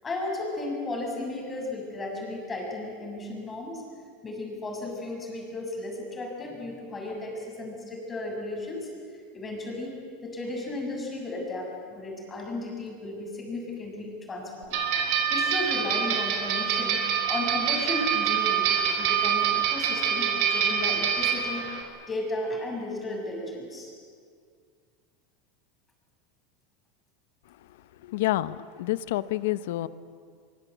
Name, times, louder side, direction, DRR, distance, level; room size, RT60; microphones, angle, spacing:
voice 1, 0.0-3.8 4.2-8.9 9.3-14.8 15.3-17.0 17.3-21.7 22.1-23.9, left 2 dB, 15° left, 0 dB, 6.8 m, -34 dB
sound 1, 14.7-21.8, right 8 dB, 60° right, 4.7 m, -26 dB
voice 2, 28.0-29.9, left 16 dB, 80° left, 15 dB, 0.9 m, -28 dB
24.5 x 23.5 x 8.4 m, 2.1 s
supercardioid pair, 140°, 0 cm